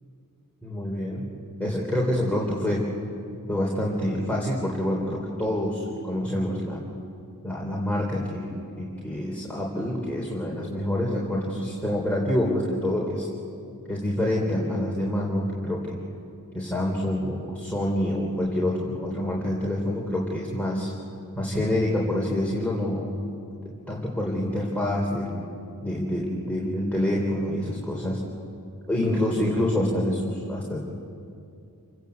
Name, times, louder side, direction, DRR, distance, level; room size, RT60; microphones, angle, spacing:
voice 1, 0.6-1.3 1.6-2.9 3.5-6.8 7.4-13.3 13.9-16.0 16.5-20.9 21.4-23.3 23.6-25.3 25.8-28.2 28.9-30.8, left 1 dB, 5° left, -3 dB, 3.7 m, -27 dB
28.5 x 19.0 x 8.2 m, 2.6 s
wide cardioid pair, 95°, 34 cm